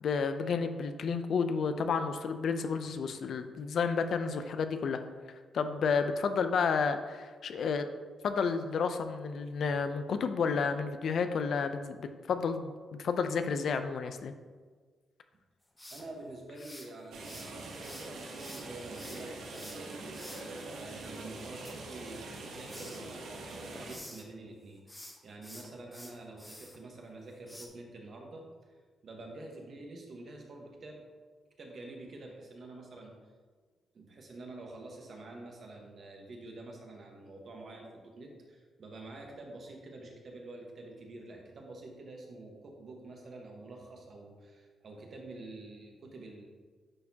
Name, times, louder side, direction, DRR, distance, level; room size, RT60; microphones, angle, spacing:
voice 1, 0.0-5.0 5.5-7.9 8.2-12.0 12.3-12.7 13.0-14.3, left 5 dB, 65° left, 9 dB, 0.5 m, -31 dB
sound 1, 15.8-17.5 17.8-20.4 21.4-22.4 22.7-23.0 23.5-24.3 24.8-26.8 27.5-27.7, left 1 dB, 5° left, 0.9 m, -49 dB
voice 2, 15.9-20.0 20.7-24.8 25.2-28.7 29.0-31.0 31.6-33.2 33.9-46.4, right 2 dB, 50° right, 1 dB, 1.2 m, -47 dB
sound 2, 17.1-24.0, right 2 dB, 85° right, 1.0 m, -43 dB
10.0 x 4.3 x 2.8 m, 1.5 s
cardioid pair, 115°, 0 cm